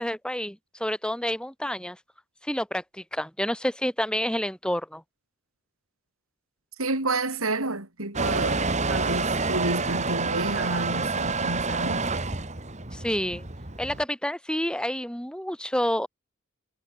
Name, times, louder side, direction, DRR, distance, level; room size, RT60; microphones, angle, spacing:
voice 1, 0.0-2.0 2.5-5.0 12.9-13.5 13.8-16.1, equal, 5° left, 7.9 m, -29 dB
voice 2, 6.8-12.0, right 2 dB, 85° right, 5.3 m, -30 dB
Motor vehicle (road) / Engine starting / Accelerating revving vroom, 8.1-14.0, right 3 dB, 35° right, 3.0 m, -28 dB
head